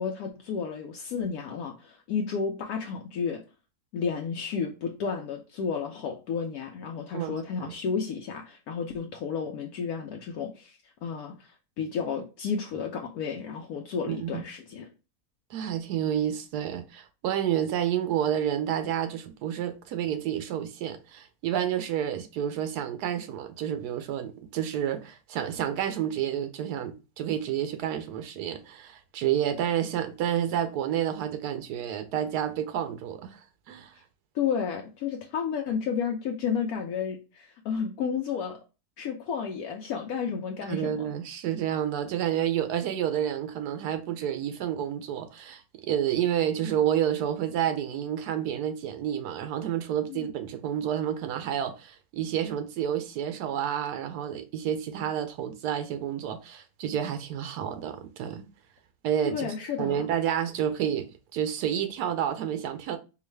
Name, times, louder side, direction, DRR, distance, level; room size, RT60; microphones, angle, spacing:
voice 1, 0.0-3.4 3.9-14.9 34.3-38.6 39.0-41.0 50.1-50.3 59.2-60.0, left 6 dB, 75° left, 1.0 m, -32 dB
voice 2, 14.1-14.5 15.5-33.9 40.6-58.4 59.0-63.0, right 10 dB, 85° right, 1.2 m, -30 dB
4.6 x 2.4 x 3.2 m
omnidirectional pair, 1.6 m